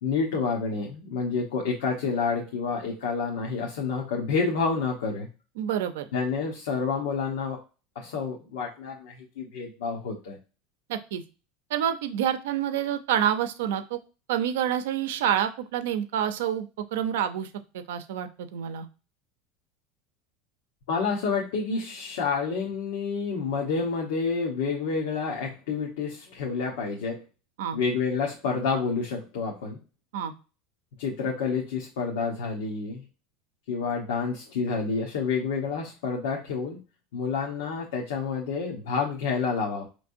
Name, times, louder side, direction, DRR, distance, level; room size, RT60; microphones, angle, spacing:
voice 1, 0.0-5.3 6.1-7.6 7.9-10.4 20.9-27.2 27.7-29.8 31.0-33.0 33.7-36.8 37.1-39.8, left 5 dB, 85° left, -2 dB, 1.0 m, -29 dB
voice 2, 5.6-6.1 10.9-11.2 11.7-14.0 14.3-16.7 16.9-17.5 17.7-18.9 27.6-27.8 30.1-30.3, right 10 dB, 85° right, 10 dB, 0.6 m, -27 dB
5.2 x 3.2 x 2.6 m, 0.33 s
supercardioid pair, 150°, 0 cm